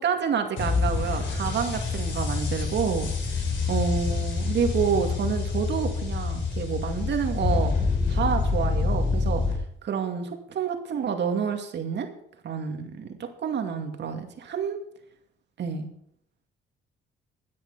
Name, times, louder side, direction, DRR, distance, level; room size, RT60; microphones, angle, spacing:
voice 1, 0.0-3.1 3.7-7.7 8.1-9.4 9.8-12.1 12.4-14.8 15.6-15.9, right 7 dB, 65° right, 5 dB, 2.3 m, -28 dB
sound 1, 0.6-9.5, left 4 dB, 70° left, 4.1 m, -27 dB
13.5 x 9.3 x 5.6 m, 0.68 s
cardioid pair, 90°, 20 cm